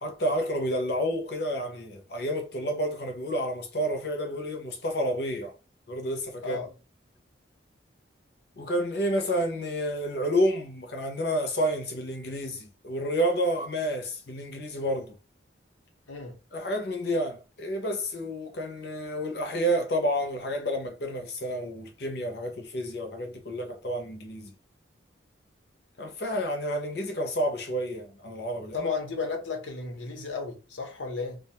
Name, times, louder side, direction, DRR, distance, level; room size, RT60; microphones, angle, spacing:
voice 1, 0.0-5.6 5.9-6.6 8.6-15.2 16.5-24.5 26.0-28.9, equal, 60° left, 0.7 m, -30 dB
voice 2, 28.7-31.4, left 4 dB, 90° left, 0.8 m, -33 dB
2.4 x 2.3 x 2.8 m
head